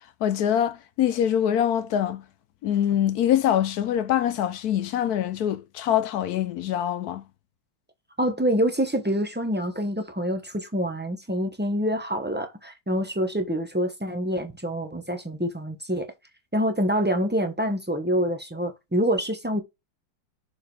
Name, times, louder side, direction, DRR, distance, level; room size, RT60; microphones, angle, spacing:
voice 1, 0.2-2.2 2.6-7.2, left 10 dB, 70° left, 0.9 m, -24 dB
voice 2, 8.2-16.1 16.5-19.6, equal, 15° right, 0.3 m, -26 dB
6.7 x 4.5 x 3.3 m
omnidirectional pair, 2.0 m